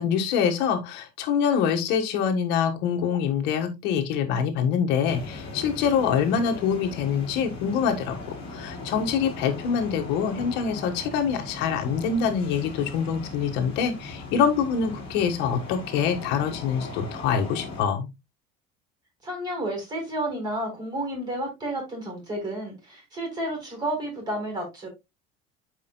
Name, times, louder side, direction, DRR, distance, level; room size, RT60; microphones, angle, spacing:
voice 1, 0.0-18.1, left 7 dB, 65° left, 1.5 m, -25 dB
sound 1, 5.0-17.8, left 2 dB, 30° left, 4.0 m, -39 dB
voice 2, 19.2-24.9, right 1 dB, 20° right, 4.3 m, -31 dB
12.5 x 5.1 x 2.2 m
cardioid pair, 170°, 20 cm